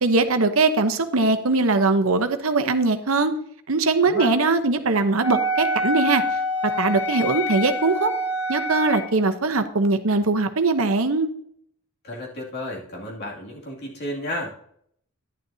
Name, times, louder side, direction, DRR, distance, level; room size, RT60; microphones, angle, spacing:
voice 1, 0.0-3.3 3.7-6.2 6.6-8.1 8.5-11.3, right 3 dB, 70° right, 8 dB, 0.9 m, -21 dB
voice 2, 4.0-4.3 12.0-14.5, left 1 dB, 50° left, -2 dB, 2.5 m, -32 dB
Wind instrument woodwind instrument, 5.2-9.1, equal, 80° left, 1.7 m, -26 dB
11.0 x 10.5 x 2.8 m, 0.67 s
head